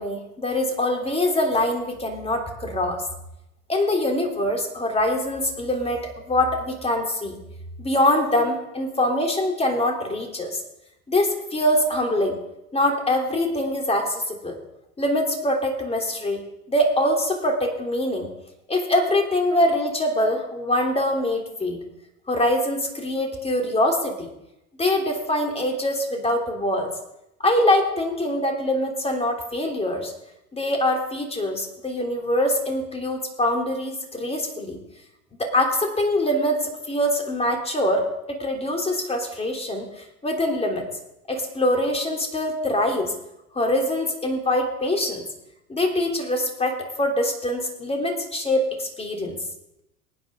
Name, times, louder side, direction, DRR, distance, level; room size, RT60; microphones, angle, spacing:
voice 1, 0.0-3.0 3.7-7.4 7.8-10.6 11.1-12.4 12.7-14.6 15.0-18.3 18.7-21.8 22.3-24.3 24.8-26.9 27.4-30.1 30.5-34.8 35.4-39.9 40.2-40.9 41.3-43.1 43.5-45.2 45.7-49.4, left 1 dB, 15° left, 2 dB, 3.3 m, -24 dB
23.5 x 9.4 x 3.8 m, 0.89 s
hypercardioid pair, 80°, 43 cm